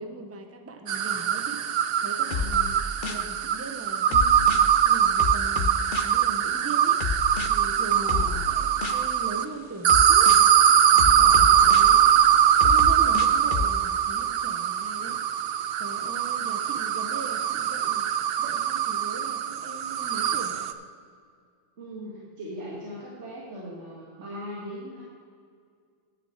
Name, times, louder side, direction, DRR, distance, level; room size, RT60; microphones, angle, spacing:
voice 1, 0.0-1.6 2.0-7.0 7.5-10.3 11.3-12.3 12.6-15.3 15.8-20.7, right 2 dB, 15° right, 6 dB, 0.7 m, -40 dB
sound 1, 0.9-9.4 9.8-20.7, right 9 dB, 65° right, 0.7 m, -22 dB
sound 2, 2.3-3.3 4.1-4.7 5.2-6.2 7.0-7.5 8.1-9.1 9.9-10.5 11.0-11.9 12.6-13.7, left 5 dB, 55° left, 0.7 m, -29 dB
voice 2, 7.8-8.5 10.9-11.6 21.8-25.0, equal, 80° right, -6 dB, 2.1 m, -39 dB
10.0 x 6.8 x 7.1 m, 2.1 s
omnidirectional pair, 1.2 m